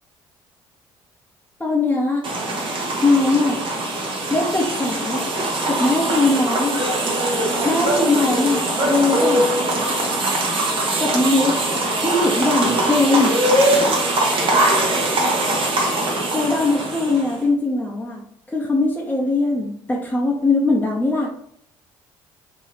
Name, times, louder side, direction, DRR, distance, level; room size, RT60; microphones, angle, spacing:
voice 1, 1.6-2.2 3.0-3.6 4.3-5.2 5.7-6.8 7.6-9.5 11.0-11.6 12.0-13.4 16.3-18.2 18.5-21.3, left 2 dB, 15° left, -3 dB, 0.8 m, -20 dB
sound 1, 2.2-17.4, right 1 dB, 45° right, 1.1 m, -21 dB
3.0 x 2.9 x 4.0 m, 0.68 s
hypercardioid pair, 55°, 12 cm